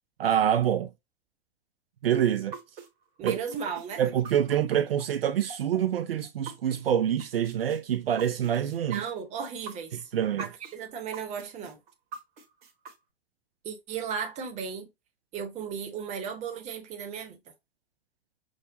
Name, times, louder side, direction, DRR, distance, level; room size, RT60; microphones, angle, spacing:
voice 1, 0.2-0.9 2.0-2.6 3.2-3.4 4.0-9.0 10.1-10.5, right 9 dB, 70° right, 0.4 m, -26 dB
sound 1, 2.5-6.8 7.2-10.8 11.1-12.9, right 5 dB, 50° right, 1.1 m, -43 dB
voice 2, 3.2-4.0 8.9-10.1 10.4-11.8 13.6-14.9 15.3-17.4, right 6 dB, 25° right, 0.8 m, -35 dB
6.0 x 2.0 x 2.6 m
figure-of-eight pair, 100°, 30 cm